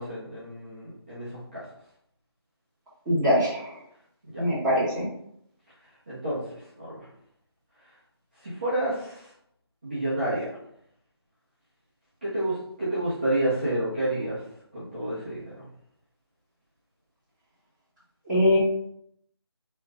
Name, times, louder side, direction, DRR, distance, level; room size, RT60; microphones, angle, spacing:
voice 1, 0.0-1.6 4.2-4.4 6.1-6.4 6.8-7.1 8.4-9.3 9.8-10.5 12.2-14.4 14.7-15.6, right 1 dB, 25° right, -11 dB, 1.0 m, -29 dB
voice 2, 3.0-3.7 4.4-5.1 18.3-18.6, equal, 5° right, -18 dB, 1.5 m, -22 dB
4.3 x 3.2 x 3.7 m, 0.72 s
figure-of-eight pair, 180°, 14 cm